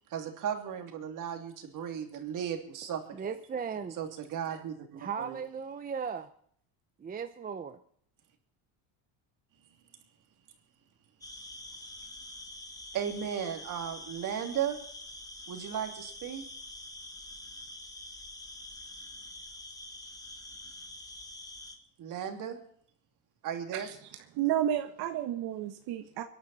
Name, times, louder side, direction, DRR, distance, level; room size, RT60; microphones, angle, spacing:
voice 1, 0.1-3.4 4.0-5.4 12.9-14.8 15.5-16.4 22.0-22.6 23.4-23.9, right 9 dB, 50° right, 5 dB, 3.0 m, -35 dB
voice 2, 3.1-4.0 4.9-6.3 7.0-7.8, right 6 dB, 20° right, 9 dB, 0.8 m, -37 dB
sound 1, 11.2-21.8, left 1 dB, 10° left, 2.0 m, -46 dB
voice 3, 24.3-26.2, right 11 dB, 70° right, 7 dB, 1.5 m, -31 dB
25.0 x 11.0 x 4.3 m, 0.62 s
cardioid pair, 130°, 41 cm